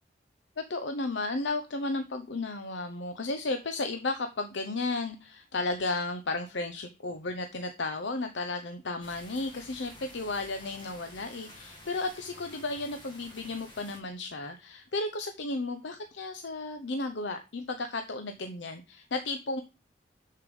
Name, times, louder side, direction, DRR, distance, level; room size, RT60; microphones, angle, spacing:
voice 1, 0.6-19.6, left 2 dB, 85° left, 8 dB, 0.8 m, -34 dB
sound 1, 9.0-14.0, left 1 dB, 25° left, 2.3 m, -50 dB
6.7 x 6.7 x 5.3 m, 0.30 s
head